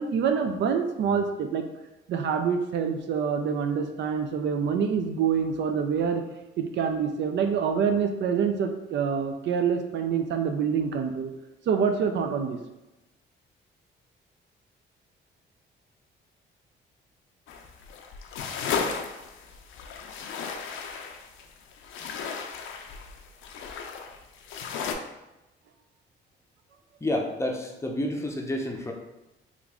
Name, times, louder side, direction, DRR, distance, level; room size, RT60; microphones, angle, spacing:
voice 1, 0.0-1.7 2.1-6.2 6.6-11.3 11.7-12.6, right 6 dB, 65° right, 6 dB, 0.4 m, -26 dB
sound 1, 17.5-24.9, left 6 dB, 80° left, 0.4 m, -35 dB
voice 2, 27.0-28.9, left 1 dB, 15° left, 1 dB, 0.5 m, -29 dB
3.1 x 2.5 x 3.5 m, 0.97 s
cardioid pair, 90°, 20 cm